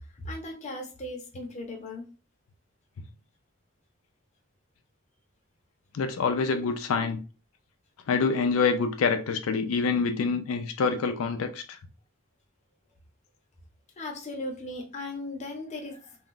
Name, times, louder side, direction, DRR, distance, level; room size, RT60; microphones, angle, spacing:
voice 1, 0.2-2.1 14.0-16.2, left 2 dB, 35° left, 0.7 m, -37 dB
voice 2, 5.9-7.2 8.1-11.8, left 5 dB, 85° left, 0.4 m, -26 dB
2.5 x 2.2 x 3.7 m
head